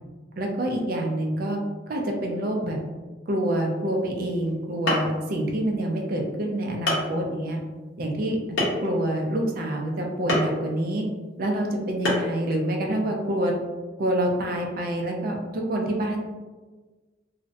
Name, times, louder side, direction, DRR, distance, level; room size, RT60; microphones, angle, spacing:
voice 1, 0.4-1.6 1.9-2.8 3.3-7.6 8.0-8.6 8.8-11.0 11.4-13.5 14.0-16.2, right 1 dB, 45° right, 1 dB, 0.4 m, -27 dB
sound 1, 4.5-4.6 4.9-5.2 6.1-6.2 6.9-7.1 8.6-9.0 10.3-10.5 12.0-12.4, left 1 dB, 80° left, 0.7 m, -24 dB
2.4 x 2.0 x 2.5 m, 1.3 s
head